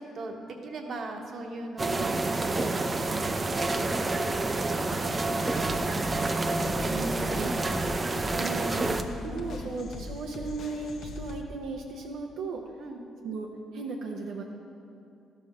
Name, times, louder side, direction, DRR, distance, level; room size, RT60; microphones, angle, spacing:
voice 1, 0.0-7.6 9.3-9.7 12.8-13.0, right 2 dB, 60° right, 2 dB, 1.1 m, -40 dB
sound 1, 1.8-9.0, right 2 dB, 25° right, 0.5 m, -28 dB
sound 2, 5.3-11.4, left 3 dB, 70° left, 0.7 m, -41 dB
voice 2, 6.9-7.5 8.3-12.6 13.2-14.4, right 3 dB, 85° right, 0 dB, 0.7 m, -36 dB
12.0 x 5.1 x 5.9 m, 2.6 s
cardioid pair, 90°, 0 cm